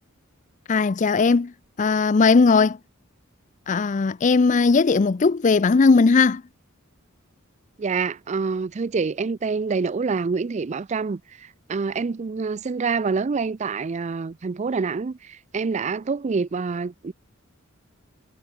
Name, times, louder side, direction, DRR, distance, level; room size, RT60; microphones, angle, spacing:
voice 1, 0.7-1.5 1.8-2.8 3.7-6.4, left 4 dB, 35° left, 0.4 m, -18 dB
voice 2, 7.8-17.1, right 4 dB, 35° right, 0.4 m, -26 dB
head